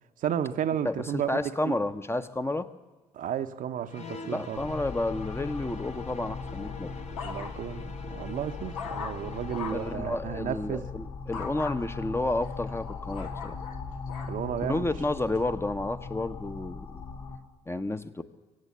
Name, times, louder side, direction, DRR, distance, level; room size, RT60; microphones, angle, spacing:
voice 1, 0.2-1.7 3.1-4.7 7.2-10.9 14.3-14.9, right 9 dB, 50° right, 0.8 m, -33 dB
voice 2, 0.8-2.7 4.2-6.9 9.7-13.6 14.6-16.9 17.7-18.2, left 2 dB, 15° left, 0.8 m, -31 dB
sound 1, 3.9-10.0, left 4 dB, 40° left, 1.1 m, -45 dB
sound 2, 4.5-17.4, left 4 dB, 60° left, 2.8 m, -39 dB
sound 3, 6.5-7.8 8.3-10.0 11.3-11.8 12.4-14.4 15.0-15.4, left 6 dB, 80° left, 1.1 m, -40 dB
23.5 x 8.2 x 7.5 m
figure-of-eight pair, 45°, 17 cm